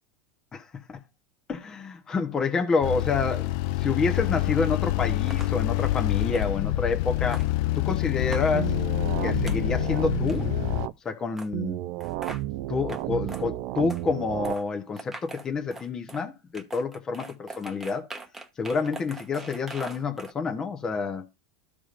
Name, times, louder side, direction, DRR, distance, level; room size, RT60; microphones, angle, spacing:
voice 1, 0.5-1.0 1.5-7.4 7.8-8.8 9.2-10.5 11.0-11.9 12.7-18.1 18.6-21.3, left 4 dB, 20° left, 1.0 m, -28 dB
sound 1, 2.8-10.9, left 16 dB, 60° left, 0.4 m, -26 dB
sound 2, 5.3-5.5 6.3-6.5 7.3-7.5 8.3-8.5 9.5-9.6 10.3-10.5 11.4-11.5 12.0-12.4 12.9-13.0 13.3-13.4 13.9-14.0 14.4-14.6 15.0-16.2 16.5-20.3, right 3 dB, 10° right, 1.1 m, -41 dB
sound 3, 8.5-10.9 11.5-14.5, right 16 dB, 55° right, 0.4 m, -32 dB
14.0 x 4.9 x 2.5 m
supercardioid pair, 140°, 3 cm